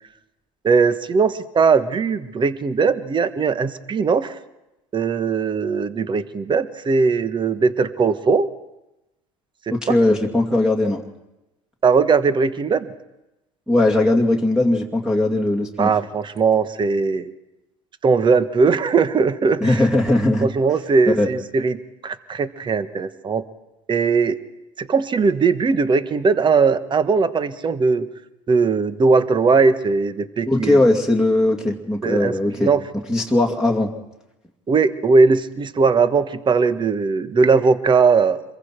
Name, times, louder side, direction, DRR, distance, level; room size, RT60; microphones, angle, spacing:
voice 1, 0.6-4.4 4.9-8.5 9.7-9.8 11.8-12.9 15.8-17.3 18.0-19.8 20.4-23.4 23.9-24.4 24.8-28.1 28.5-30.8 32.0-32.8 34.7-38.4, right 4 dB, 30° right, 13 dB, 1.2 m, -19 dB
voice 2, 9.7-11.0 13.7-15.9 19.6-20.5 21.1-21.3 30.5-32.7 33.1-33.9, left 2 dB, 5° right, 0 dB, 2.4 m, -19 dB
27.0 x 22.5 x 4.5 m, 0.95 s
hypercardioid pair, 75°, 16 cm